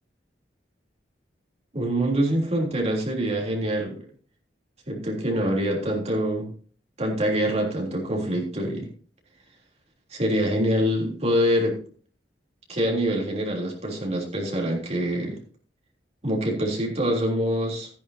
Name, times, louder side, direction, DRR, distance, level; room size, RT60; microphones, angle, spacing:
voice 1, 1.7-4.1 4.9-6.5 7.0-8.9 10.1-11.8 12.7-15.4 16.2-17.9, equal, 40° right, 0 dB, 3.4 m, -25 dB
14.0 x 10.5 x 2.8 m, 0.43 s
head